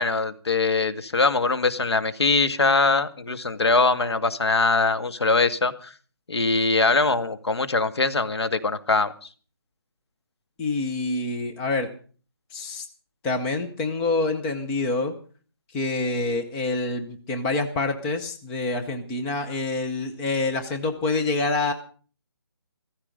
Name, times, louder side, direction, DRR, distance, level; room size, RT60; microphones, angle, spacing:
voice 1, 0.0-5.9 6.3-9.1, left 3 dB, 85° left, 11 dB, 2.0 m, -22 dB
voice 2, 10.6-11.9 12.5-12.9 13.2-15.2 15.7-21.7, left 3 dB, 5° left, 5 dB, 0.6 m, -26 dB
15.5 x 14.5 x 5.2 m, 0.41 s
hypercardioid pair, 175°, 13 cm